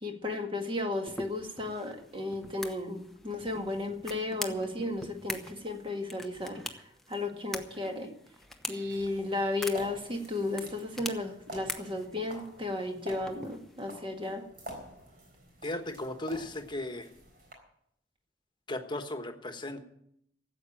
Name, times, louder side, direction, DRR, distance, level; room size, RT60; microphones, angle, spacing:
voice 1, 0.0-8.1 8.7-14.4, left 2 dB, 30° right, 4 dB, 1.8 m, -34 dB
sound 1, 1.1-13.9, left 1 dB, ahead, 1.0 m, -44 dB
sound 2, 8.8-17.5, right 1 dB, 50° right, 4.1 m, -49 dB
voice 2, 15.6-17.1 18.7-19.8, left 1 dB, 25° left, 6 dB, 1.3 m, -36 dB
14.0 x 8.1 x 8.7 m, 0.72 s
head